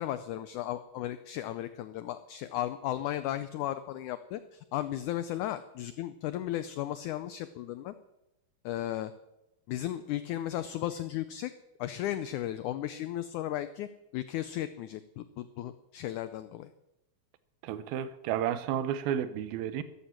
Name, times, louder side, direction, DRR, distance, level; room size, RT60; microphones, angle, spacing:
voice 1, 0.0-8.0 8.6-9.1 9.7-11.5 11.8-16.7, left 13 dB, 90° left, 12 dB, 1.7 m, -35 dB
voice 2, 17.6-19.8, right 10 dB, 80° right, 13 dB, 2.7 m, -32 dB
14.0 x 10.0 x 8.7 m, 0.96 s
omnidirectional pair, 4.2 m